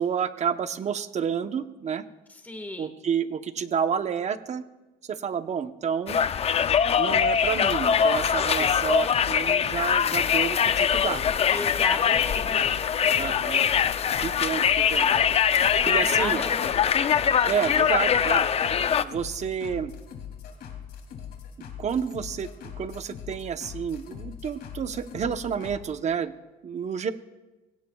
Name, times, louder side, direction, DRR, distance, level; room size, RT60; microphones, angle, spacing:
voice 1, 0.0-2.0 2.8-4.6 5.0-6.2 7.0-11.2 13.2-13.7 14.2-15.1 15.8-16.4 17.5-18.5 19.0-19.9 21.8-22.5 22.8-26.3 26.6-27.1, right 7 dB, 40° right, 9 dB, 0.9 m, -29 dB
voice 2, 2.4-2.9 11.5-13.4 15.6-16.6, left 2 dB, 10° left, 5 dB, 1.6 m, -36 dB
Conversation, 6.1-19.0, left 8 dB, 35° left, 0.5 m, -23 dB
sound 1, 6.4-25.8, left 8 dB, 70° left, 2.8 m, -41 dB
23.5 x 16.5 x 2.3 m, 1.1 s
cardioid pair, 110°, 17 cm